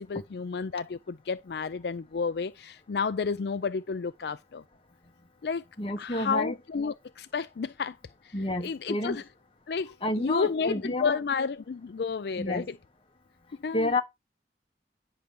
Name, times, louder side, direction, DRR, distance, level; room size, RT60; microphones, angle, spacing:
voice 1, 0.0-4.6 5.4-5.6 6.0-8.0 8.2-8.3 8.6-9.2 9.7-12.8 13.6-13.9, left 5 dB, 70° left, 0.4 m, -31 dB
voice 2, 5.8-6.5 8.3-9.2 10.0-11.2 12.4-12.7 13.7-14.0, left 1 dB, 30° left, 1.2 m, -29 dB
9.9 x 3.4 x 6.9 m
head